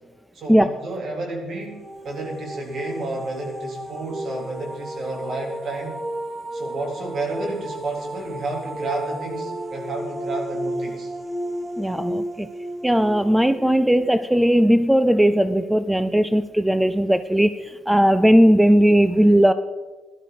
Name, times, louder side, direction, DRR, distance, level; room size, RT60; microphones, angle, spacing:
voice 1, 0.3-6.0 6.5-11.1, right 2 dB, 55° right, 0 dB, 3.9 m, -31 dB
sound 1, 1.6-14.4, right 1 dB, 30° right, 2.2 m, -33 dB
voice 2, 11.8-12.5 12.8-19.5, equal, 5° right, 12 dB, 0.5 m, -17 dB
17.0 x 12.0 x 4.2 m, 1.3 s
cardioid pair, 90°, 0 cm